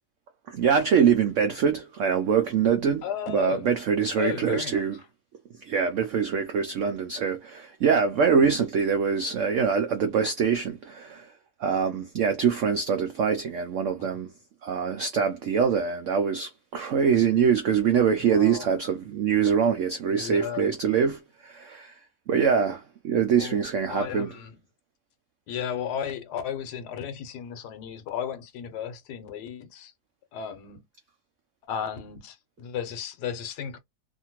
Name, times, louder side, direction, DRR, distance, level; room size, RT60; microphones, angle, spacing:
voice 1, 0.5-5.0 5.6-11.3 11.6-14.3 14.6-22.0 22.3-24.3, right 6 dB, 75° right, 0.7 m, -24 dB
voice 2, 3.0-3.7 4.2-4.8 14.0-14.2 18.2-18.7 20.1-20.7 23.4-24.6 25.5-29.9 30.3-30.8 31.7-33.8, left 8 dB, 75° left, 1.2 m, -34 dB
2.8 x 2.5 x 2.8 m
omnidirectional pair, 1.9 m